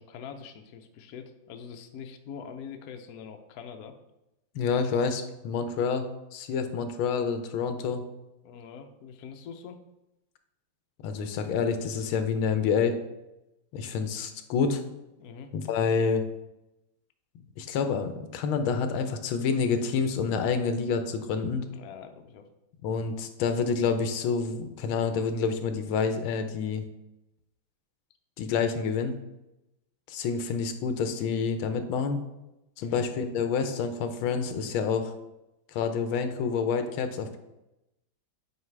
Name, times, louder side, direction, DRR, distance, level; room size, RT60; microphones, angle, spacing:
voice 1, 0.0-4.0 8.4-9.8 15.2-15.5 21.7-22.4 32.8-33.0, left 7 dB, 65° left, 6 dB, 0.9 m, -43 dB
voice 2, 4.5-8.0 11.0-13.0 13.7-14.8 15.5-16.2 17.6-21.6 22.8-26.8 28.4-29.1 30.1-32.2 32.8-35.1 35.7-37.4, left 5 dB, 85° left, 8 dB, 1.6 m, -28 dB
8.2 x 4.7 x 3.3 m, 0.92 s
omnidirectional pair, 2.2 m